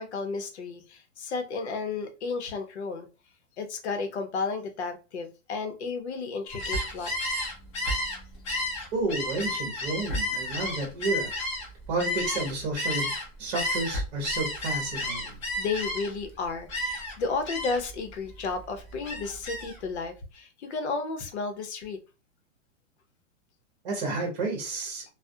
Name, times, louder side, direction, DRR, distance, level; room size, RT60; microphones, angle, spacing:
voice 1, 0.0-3.1 3.6-7.1 15.6-22.0, left 4 dB, 60° left, 7 dB, 0.7 m, -33 dB
Gull seagull, 6.5-13.2 13.5-16.3 16.7-17.1 17.4-17.9 18.3-19.8, left 1 dB, 25° left, 0.5 m, -32 dB
voice 2, 8.9-11.3 11.9-13.1 13.4-15.4 23.8-25.0, right 2 dB, 35° right, 1 dB, 0.9 m, -31 dB
2.3 x 2.0 x 2.6 m, 0.30 s
supercardioid pair, 175°, 38 cm